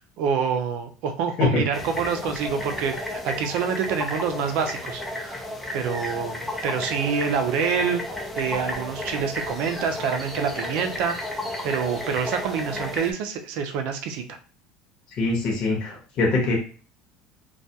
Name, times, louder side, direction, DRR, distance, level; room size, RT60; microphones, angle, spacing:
voice 1, 0.2-5.4 5.7-8.0 8.4-11.2 11.6-14.4, right 6 dB, 65° right, 7 dB, 0.5 m, -27 dB
sound 1, 1.7-13.1, left 1 dB, 5° left, 0.5 m, -32 dB
voice 2, 15.2-16.6, left 3 dB, 45° left, -1 dB, 0.9 m, -23 dB
2.2 x 2.2 x 2.7 m, 0.39 s
cardioid pair, 145°, 2 cm